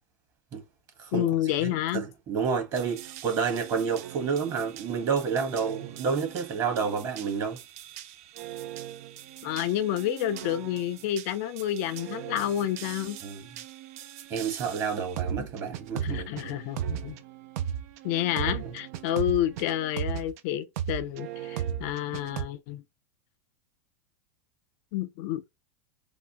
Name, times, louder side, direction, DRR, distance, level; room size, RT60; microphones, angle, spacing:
voice 1, 1.1-2.0 9.4-13.2 15.3-15.5 16.0-17.2 18.0-22.8 24.9-25.4, left 12 dB, 55° left, 0.4 m, -29 dB
voice 2, 1.6-7.6 13.2-13.4 14.3-16.6, right 6 dB, 40° right, 1.3 m, -29 dB
sound 1, 2.7-20.4 20.8-22.4, right 10 dB, 65° right, 0.5 m, -38 dB
3.4 x 2.0 x 2.8 m
hypercardioid pair, 115°, 9 cm